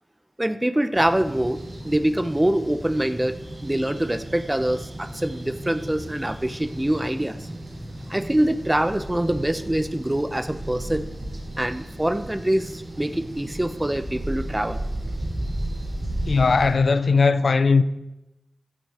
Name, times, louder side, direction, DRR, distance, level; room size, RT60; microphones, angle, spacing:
voice 1, 0.4-1.6 1.8-3.3 3.6-7.5 8.1-11.1 11.6-14.8, right 1 dB, 20° right, 0.8 m, -24 dB
sound 1, 0.9-16.7, right 1 dB, 55° right, 5.3 m, -34 dB
voice 2, 16.3-17.8, left 4 dB, 80° left, 0.5 m, -18 dB
15.0 x 8.1 x 4.4 m
cardioid pair, 45°, 0 cm